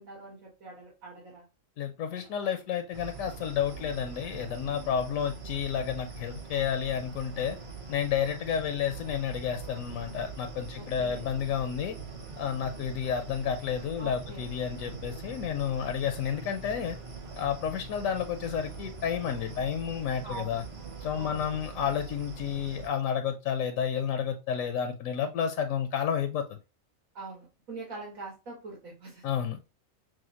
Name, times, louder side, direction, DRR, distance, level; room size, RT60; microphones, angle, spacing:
voice 1, 0.0-1.5 10.8-11.3 14.0-14.5 20.2-20.6 21.1-21.5 27.1-29.3, right 3 dB, 80° right, -3 dB, 2.1 m, -43 dB
voice 2, 1.8-7.6 7.9-12.0 12.4-17.0 17.4-20.6 21.0-26.6 29.2-29.6, left 8 dB, 80° left, 8 dB, 1.0 m, -31 dB
sound 1, 2.1-21.8, right 5 dB, 55° right, 1.0 m, -52 dB
sound 2, 2.9-22.9, right 4 dB, 35° right, 0.6 m, -43 dB
6.2 x 2.1 x 2.8 m, 0.28 s
omnidirectional pair, 1.4 m